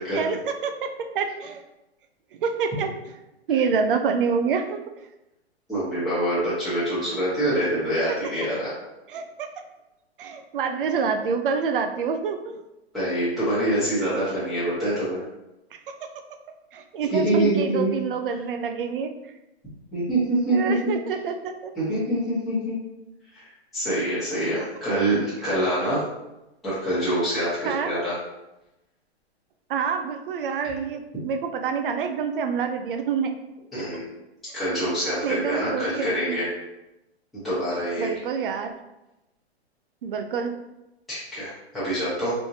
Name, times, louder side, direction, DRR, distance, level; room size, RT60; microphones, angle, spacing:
voice 1, 0.1-1.6 2.3-2.9 3.5-4.8 9.1-9.5 10.2-12.6 16.7-19.1 20.5-21.7 27.6-27.9 29.7-33.3 35.2-36.4 38.0-38.7 40.0-40.5, right 6 dB, 55° right, 6 dB, 0.5 m, -27 dB
voice 2, 5.7-8.7 12.9-15.2 17.1-17.9 19.9-20.9 21.8-22.8 23.3-23.4 23.7-26.0 26.6-28.1 33.7-34.1 34.5-36.5 37.4-38.1 41.1-42.3, right 1 dB, ahead, -14 dB, 1.3 m, -25 dB
3.4 x 3.1 x 2.7 m, 0.95 s
hypercardioid pair, 155°, 33 cm